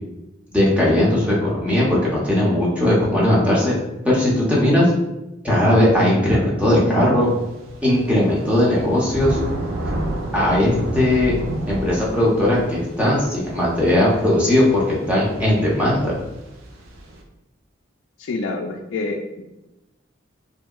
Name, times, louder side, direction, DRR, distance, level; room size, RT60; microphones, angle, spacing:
voice 1, 0.5-3.7 4.0-4.9 5.4-7.3 7.8-9.4 10.3-11.4 11.7-16.1, left 1 dB, 5° right, -6 dB, 0.7 m, -18 dB
Thunder / Rain, 7.3-17.2, right 1 dB, 85° right, 0.5 m, -31 dB
voice 2, 18.3-19.4, left 3 dB, 70° left, 0 dB, 0.3 m, -27 dB
2.7 x 2.7 x 2.3 m, 0.94 s
head